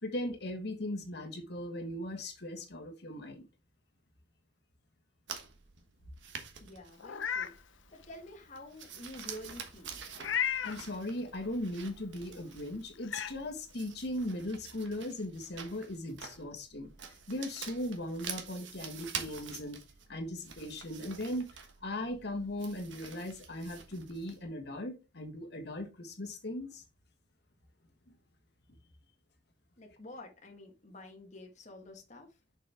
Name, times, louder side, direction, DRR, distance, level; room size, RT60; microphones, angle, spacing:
voice 1, 0.0-3.5 10.6-16.9 17.3-19.8 20.1-21.5 21.8-26.8, left 1 dB, 60° left, 1.5 m, -38 dB
sound 1, 5.3-24.5, right 7 dB, 80° right, 1.3 m, -47 dB
voice 2, 6.6-10.0 29.8-32.3, left 1 dB, 40° left, 1.4 m, -49 dB
Meow, 7.0-7.5 8.0-8.1 10.2-10.8 12.4-12.5 13.0-13.3, left 8 dB, 90° left, 0.6 m, -33 dB
6.7 x 5.3 x 3.4 m
head